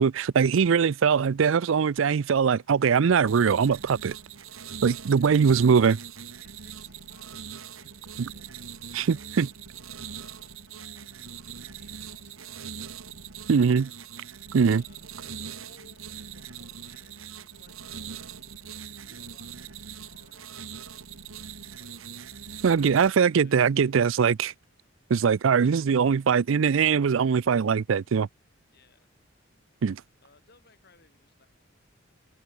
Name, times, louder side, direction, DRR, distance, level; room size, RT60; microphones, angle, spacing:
voice 1, 0.0-4.2 4.8-6.0 8.9-9.5 13.5-13.9 14.5-14.8 22.6-24.5 25.1-28.3 29.8-30.0, right 6 dB, 70° right, 0.4 m, -22 dB
sound 1, 3.2-23.1, right 7 dB, 85° right, 1.4 m, -42 dB
voice 2, 5.1-5.5 6.4-8.5 8.9-9.6 10.0-13.0 13.6-14.0 14.5-18.4 18.6-22.4 22.7-24.3 28.7-29.1 30.2-31.5, left 3 dB, 50° left, 5.9 m, -62 dB
open air
head